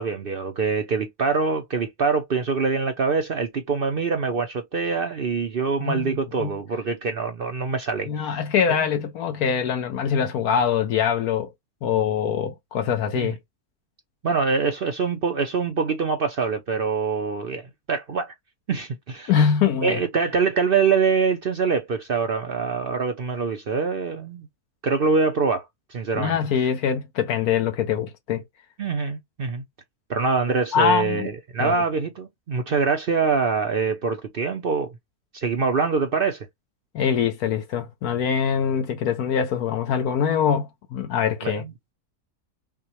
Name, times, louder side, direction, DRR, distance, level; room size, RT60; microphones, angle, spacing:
voice 1, 0.0-8.4 8.7-8.8 13.1-13.3 14.2-17.6 17.9-18.3 18.7-19.3 19.8-24.5 24.8-25.7 25.9-26.4 28.8-29.6 30.1-34.9 35.3-36.5 41.4-41.7, right 5 dB, 55° right, 0.6 m, -24 dB
voice 2, 5.8-6.5 8.1-11.5 11.8-13.4 19.3-20.0 26.1-28.4 30.7-31.3 31.6-31.8 36.9-41.6, left 7 dB, 75° left, 1.2 m, -23 dB
5.6 x 2.2 x 3.0 m
omnidirectional pair, 1.6 m